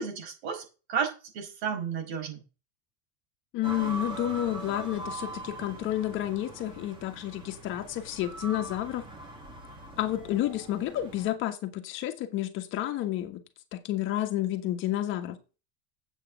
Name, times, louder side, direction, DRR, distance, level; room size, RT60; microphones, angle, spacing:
voice 1, 0.0-2.4, right 6 dB, 70° right, 5.3 m, -33 dB
voice 2, 3.5-9.0 10.0-13.4 13.7-15.4, left 13 dB, 35° left, 1.5 m, -30 dB
sound 1, 3.6-11.3, right 2 dB, 15° right, 1.9 m, -42 dB
8.4 x 6.3 x 7.4 m
supercardioid pair, 160°, 33 cm